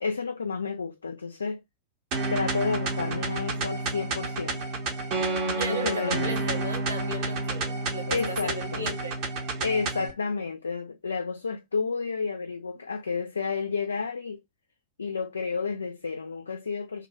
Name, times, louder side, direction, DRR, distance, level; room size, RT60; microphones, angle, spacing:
voice 1, 0.0-1.6 2.3-4.6 5.4-6.4 8.1-8.9 9.6-14.4 15.0-17.1, left 5 dB, 75° left, 0.3 m, -31 dB
sound 1, 2.1-10.1, right 3 dB, 45° right, 0.7 m, -30 dB
voice 2, 5.5-9.2, right 1 dB, 80° right, 0.7 m, -36 dB
2.5 x 2.2 x 2.6 m
figure-of-eight pair, 90°, 0 cm